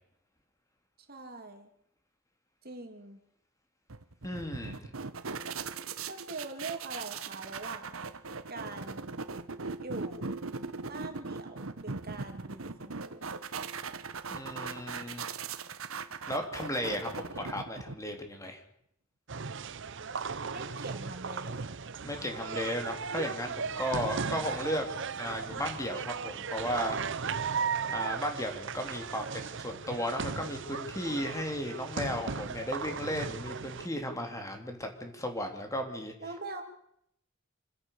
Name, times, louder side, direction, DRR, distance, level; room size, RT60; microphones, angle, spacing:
voice 1, 1.1-1.7 2.6-3.2 6.1-8.1 8.5-9.1 9.7-10.3 10.8-13.3 20.5-21.8 36.2-36.6, right 3 dB, 45° right, 5 dB, 3.3 m, -43 dB
sound 1, 3.9-18.2, right 4 dB, 80° right, 1.4 m, -39 dB
voice 2, 4.2-4.9 14.3-15.2 16.3-18.6 22.0-24.9 25.1-27.0 27.9-36.1, equal, 15° left, 4 dB, 3.4 m, -35 dB
sound 2, 19.3-33.9, right 5 dB, 60° right, 0.9 m, -36 dB
27.5 x 16.0 x 6.7 m, 0.72 s
head